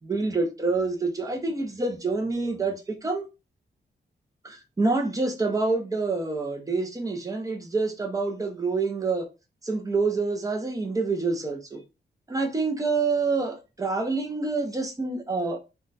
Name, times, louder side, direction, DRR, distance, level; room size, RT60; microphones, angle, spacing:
voice 1, 0.0-3.3 4.4-9.3 9.6-11.8 12.3-15.6, right 3 dB, 20° right, 0.5 m, -27 dB
2.2 x 2.1 x 3.9 m
wide cardioid pair, 175°, 18 cm